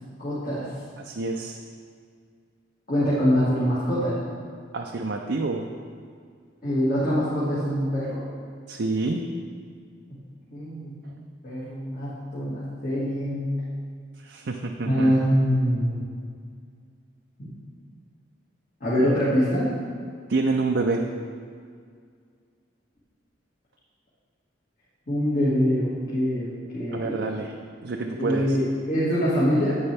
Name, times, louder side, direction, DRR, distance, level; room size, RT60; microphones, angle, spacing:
voice 1, 0.2-0.7 2.9-4.2 6.6-8.2 10.1-10.2 10.5-11.1 11.4-13.5 14.9-16.0 17.4-17.6 18.8-19.7 25.1-27.2 28.1-29.8, equal, 45° left, -10 dB, 2.0 m, -24 dB
voice 2, 1.0-1.6 4.7-5.7 8.7-9.2 14.2-15.1 20.3-21.0 26.9-27.5 27.8-28.6, right 3 dB, 60° right, 1 dB, 0.5 m, -27 dB
9.8 x 8.8 x 3.4 m, 2.1 s
head